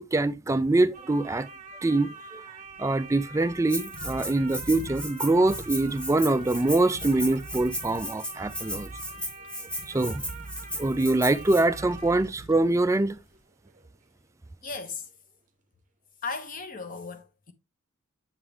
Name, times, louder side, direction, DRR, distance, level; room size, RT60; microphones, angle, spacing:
voice 1, 0.0-1.5 1.8-2.4 2.8-8.9 9.9-10.2 10.8-13.2, right 2 dB, 15° right, 0.3 m, -24 dB
sound 1, 0.9-14.8 15.1-15.2, right 4 dB, 35° right, 0.7 m, -46 dB
sound 2, 2.6-13.2, right 1 dB, 85° left, 1.6 m, -45 dB
Rattle (instrument), 3.7-11.6, equal, 5° left, 0.8 m, -36 dB
voice 2, 14.6-15.1 16.2-17.5, left 4 dB, 40° left, 1.0 m, -36 dB
7.9 x 3.8 x 3.2 m
head